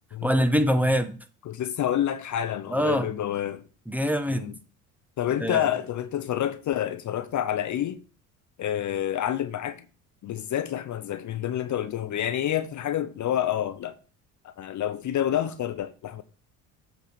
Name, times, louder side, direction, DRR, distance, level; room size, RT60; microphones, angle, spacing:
voice 1, 0.2-1.1 2.7-3.1 3.9-4.5 5.4-5.7, equal, 5° right, 0.9 m, -24 dB
voice 2, 1.5-3.6 4.3-4.5 5.2-8.0 8.6-9.8 10.2-14.0 14.6-16.2, left 11 dB, 45° left, 0.7 m, -28 dB
8.0 x 4.5 x 5.1 m
hypercardioid pair, 65°, 42 cm